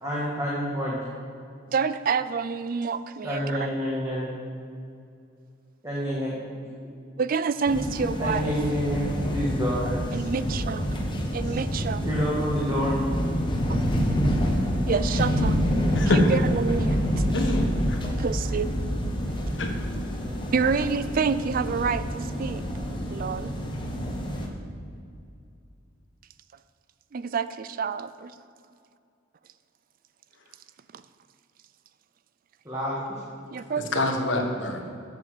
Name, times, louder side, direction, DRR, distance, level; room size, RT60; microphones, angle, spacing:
voice 1, 0.0-1.0 3.2-4.3 5.8-6.4 8.2-9.0 9.3-10.2 11.4-11.5 12.1-13.0 32.7-33.0, equal, 15° right, -7 dB, 1.6 m, -28 dB
voice 2, 1.7-3.7 7.2-8.5 10.1-11.0 11.3-12.1 14.9-15.6 16.1-17.0 18.2-18.7 19.9-20.0 20.5-22.6 23.1-23.5 27.1-28.3 33.5-34.0, right 5 dB, 45° right, 14 dB, 0.4 m, -28 dB
sound 1, 7.6-24.5, equal, 25° left, 1.1 m, -27 dB
voice 3, 17.3-18.0 19.6-19.7 33.9-34.8, left 1 dB, 60° left, 3 dB, 1.3 m, -25 dB
7.9 x 7.2 x 7.8 m, 2.4 s
head